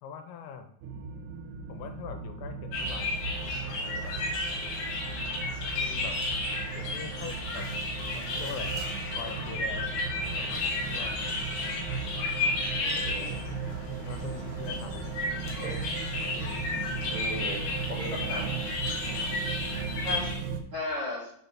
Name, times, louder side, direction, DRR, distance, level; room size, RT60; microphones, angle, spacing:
voice 1, 0.0-0.7 1.7-3.2 3.8-4.1 5.7-6.2 6.7-7.7 8.1-8.8 9.1-9.9 10.2-11.2 14.1-15.1 15.5-15.7 16.2-16.7 19.1-19.4, left 8 dB, 85° left, 6 dB, 3.2 m, -43 dB
sound 1, 0.8-20.6, right 5 dB, 90° right, 3.6 m, -37 dB
sound 2, 2.7-20.3, left 2 dB, 60° left, 3.3 m, -33 dB
voice 2, 12.8-13.3 15.6-15.8 17.1-17.6 17.9-18.5 20.0-20.3 20.7-21.3, left 1 dB, 45° right, -7 dB, 1.9 m, -35 dB
7.5 x 4.4 x 5.6 m, 0.67 s
omnidirectional pair, 5.9 m